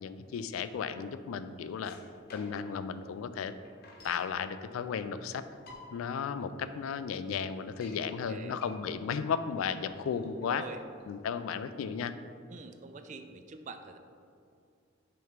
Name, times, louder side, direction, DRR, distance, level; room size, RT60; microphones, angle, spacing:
voice 1, 0.0-2.0 2.3-3.5 4.0-5.4 5.9-10.6 11.1-12.1, left 6 dB, 90° left, 12 dB, 0.3 m, -34 dB
sound 1, 1.8-2.8 3.1-3.2 3.4-4.3 5.1-5.2 5.5-6.1 6.6-6.7 7.0-7.1 7.5-8.0 8.5-11.4, left 3 dB, 50° left, 0.9 m, -52 dB
voice 2, 8.0-8.6 10.4-10.8 12.5-14.0, right 4 dB, 35° right, 8 dB, 0.3 m, -45 dB
6.4 x 3.0 x 5.0 m, 2.4 s
head